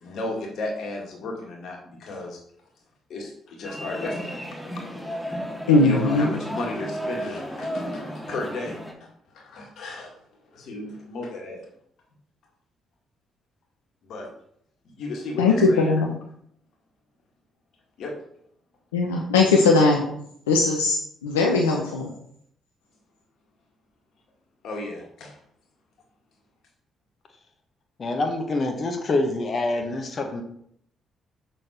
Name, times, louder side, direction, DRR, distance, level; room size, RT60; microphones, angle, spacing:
voice 1, 0.0-2.4 3.1-4.4 5.3-5.4 5.7-10.1 10.5-11.7 14.0-14.3 14.9-16.0 18.0-18.1 24.6-25.4, left 2 dB, 60° left, 0 dB, 2.1 m, -34 dB
sound 1, 3.6-8.9, equal, 5° left, 2.1 m, -33 dB
voice 2, 5.7-6.3 15.4-16.1 18.9-20.0 20.5-21.0 21.2-22.1, left 3 dB, 85° left, 0 dB, 0.8 m, -19 dB
voice 3, 28.0-30.4, left 2 dB, 45° left, 4 dB, 1.3 m, -26 dB
6.8 x 6.2 x 4.5 m, 0.69 s
figure-of-eight pair, 45°, 0 cm